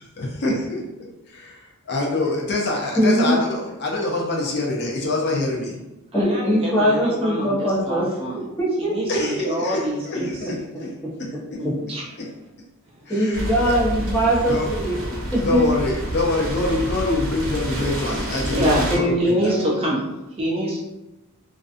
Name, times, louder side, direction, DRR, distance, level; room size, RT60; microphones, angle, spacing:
voice 1, 0.2-0.8 1.3-5.8 9.1-10.9 11.2-11.6 12.2-12.3 13.1-13.7 14.5-14.9 15.3-19.5, left 2 dB, 50° left, -2 dB, 0.5 m, -25 dB
voice 2, 3.0-3.4 6.1-8.1 8.3-9.5 10.1-10.5 13.1-15.0 15.3-15.8 18.9-19.9, equal, 10° left, -7 dB, 0.8 m, -22 dB
voice 3, 6.1-8.4 8.8-10.3 11.6-12.0 18.5-18.9 19.2-20.0 20.4-20.8, equal, 25° right, -3 dB, 0.4 m, -26 dB
sound 1, 13.3-19.0, equal, 60° right, 0.7 m, -28 dB
2.4 x 2.3 x 2.4 m, 0.99 s
head